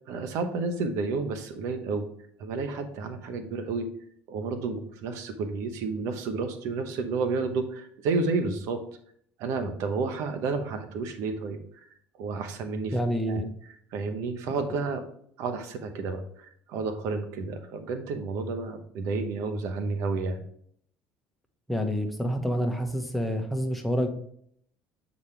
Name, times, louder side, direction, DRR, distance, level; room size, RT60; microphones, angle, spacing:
voice 1, 0.1-2.1 2.4-3.9 4.3-8.8 9.4-11.6 12.1-13.0 13.3-13.4 13.9-15.0 15.4-20.4, right 4 dB, 70° right, 8 dB, 0.9 m, -31 dB
voice 2, 12.9-13.5 21.7-24.1, equal, ahead, 3 dB, 1.1 m, -28 dB
7.1 x 4.2 x 3.3 m, 0.65 s
supercardioid pair, 85°, 5 cm